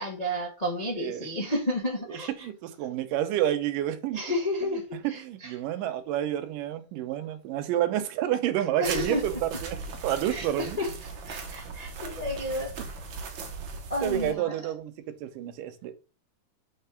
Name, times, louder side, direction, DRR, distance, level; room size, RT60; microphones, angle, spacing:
voice 1, 0.0-2.5 4.1-5.5 8.8-9.3 10.3-12.7 13.9-14.5, left 1 dB, 85° left, 0.3 m, -31 dB
voice 2, 2.4-4.2 5.0-9.8 10.0-10.8 14.0-14.9 15.2-15.9, right 12 dB, 85° right, 2.5 m, -29 dB
sound 1, 8.8-14.3, right 4 dB, 60° right, 1.3 m, -38 dB
5.9 x 4.2 x 5.7 m
omnidirectional pair, 3.8 m